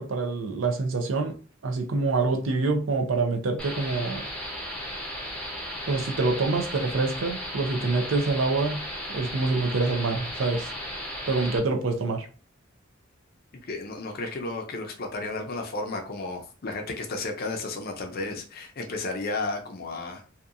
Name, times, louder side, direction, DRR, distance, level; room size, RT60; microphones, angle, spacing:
voice 1, 0.0-1.4 1.6-4.3 5.9-8.8 9.1-10.7 11.3-12.3, right 3 dB, 70° right, 0.5 m, -26 dB
sound 1, 3.6-11.6, equal, 5° left, 0.6 m, -35 dB
voice 2, 13.6-20.2, left 3 dB, 50° left, 0.5 m, -33 dB
2.7 x 2.3 x 2.5 m
head